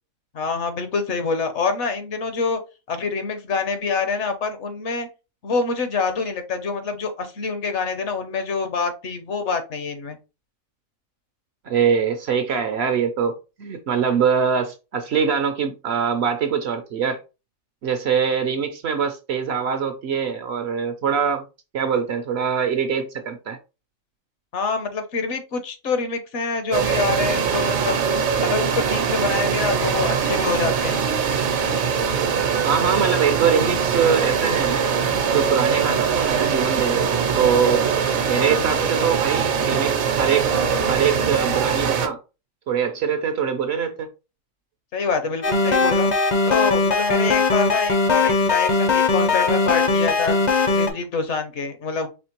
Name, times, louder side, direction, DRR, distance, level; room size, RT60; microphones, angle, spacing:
voice 1, 0.3-2.6 2.9-5.1 5.4-10.2 24.5-28.0 28.4-31.0 44.9-46.1 46.5-50.4 50.7-52.1, left 4 dB, 65° left, 1.0 m, -26 dB
voice 2, 11.7-17.2 17.8-21.4 21.7-23.6 32.6-34.9 35.3-37.8 38.3-40.5 40.9-42.2 42.7-44.1, right 7 dB, 65° right, 0.7 m, -23 dB
sound 1, 26.7-42.1, right 6 dB, 80° right, 1.2 m, -22 dB
sound 2, 45.4-50.9, left 4 dB, 50° left, 0.5 m, -19 dB
4.3 x 3.1 x 2.9 m
omnidirectional pair, 1.4 m